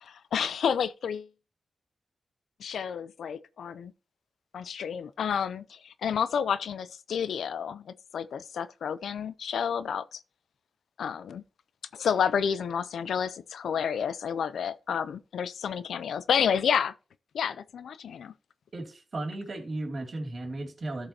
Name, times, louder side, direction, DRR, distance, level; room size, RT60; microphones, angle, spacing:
voice 1, 0.0-1.3 2.6-3.9 4.5-10.2 11.0-11.4 11.9-16.9 17.3-18.3, left 7 dB, 90° left, 0.4 m, -30 dB
voice 2, 18.7-21.1, right 2 dB, 60° right, 2.6 m, -35 dB
13.5 x 5.5 x 2.9 m
cardioid pair, 45°, 0 cm